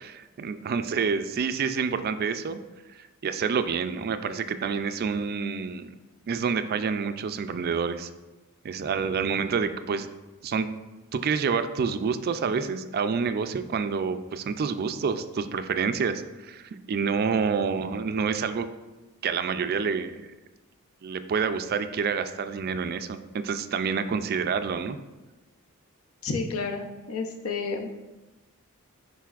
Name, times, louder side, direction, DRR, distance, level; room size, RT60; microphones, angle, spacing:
voice 1, 0.0-2.6 3.2-5.9 6.3-8.1 8.6-10.1 10.4-10.7 11.1-18.7 19.2-20.3 21.0-25.0, right 5 dB, 45° right, 10 dB, 0.3 m, -28 dB
voice 2, 26.2-27.9, left 4 dB, 70° left, 4 dB, 0.8 m, -31 dB
10.0 x 4.1 x 2.4 m, 1.1 s
head